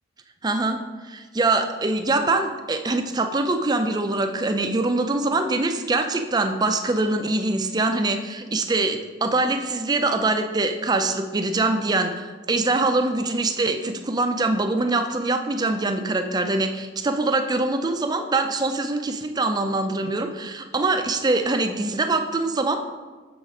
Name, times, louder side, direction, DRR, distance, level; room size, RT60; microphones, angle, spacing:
voice 1, 0.4-22.8, right 2 dB, 20° right, 7 dB, 0.4 m, -23 dB
6.8 x 4.1 x 4.9 m, 1.3 s
head